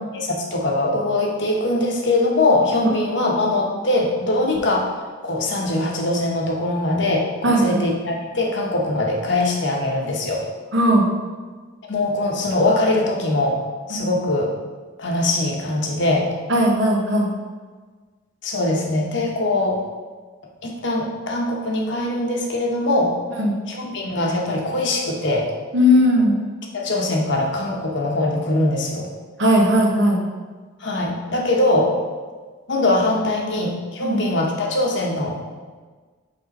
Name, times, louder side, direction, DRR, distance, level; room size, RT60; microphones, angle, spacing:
voice 1, 0.1-4.9 5.2-10.4 11.9-13.6 13.9-14.5 15.0-16.3 18.4-19.8 20.6-23.1 23.7-25.5 26.7-29.1 30.8-31.9 32.7-35.4, left 2 dB, 60° left, 0 dB, 1.1 m, -22 dB
voice 2, 7.4-7.8 10.7-11.1 13.9-14.1 16.5-17.3 23.4-23.5 25.7-26.4 29.4-30.2 34.0-34.2, equal, 65° right, -1 dB, 1.2 m, -17 dB
5.4 x 3.7 x 5.3 m, 1.4 s
head